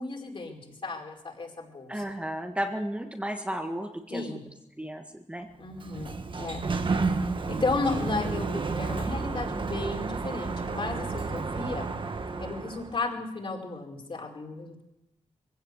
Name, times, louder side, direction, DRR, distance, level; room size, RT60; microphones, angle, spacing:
voice 1, 0.0-2.0 4.1-4.4 5.6-6.1 6.4-7.0 7.5-11.9 12.4-14.8, left 3 dB, 45° left, 1 dB, 4.8 m, -34 dB
voice 2, 1.9-4.4 4.8-5.5, equal, 10° right, 3 dB, 1.7 m, -34 dB
Sliding door, 5.6-13.0, right 4 dB, 45° right, 1.5 m, -31 dB
23.5 x 16.5 x 8.4 m, 0.89 s
wide cardioid pair, 145°, 12 cm